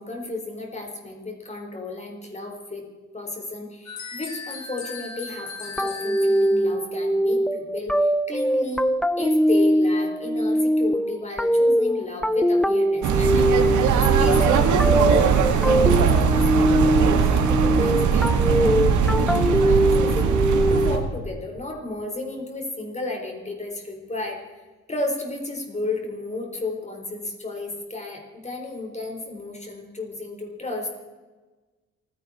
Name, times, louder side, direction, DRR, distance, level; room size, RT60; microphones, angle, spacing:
voice 1, 0.0-2.8 3.1-8.9 9.2-24.4 24.9-30.9, left 2 dB, 20° left, 2 dB, 4.3 m, -33 dB
sound 1, 3.9-6.7, left 4 dB, 70° left, 3.6 m, -37 dB
sound 2, 5.8-21.1, equal, ahead, 0.6 m, -22 dB
sound 3, 13.0-21.0, right 6 dB, 75° right, 2.0 m, -20 dB
28.5 x 10.5 x 4.4 m, 1.3 s
cardioid pair, 90°, 30 cm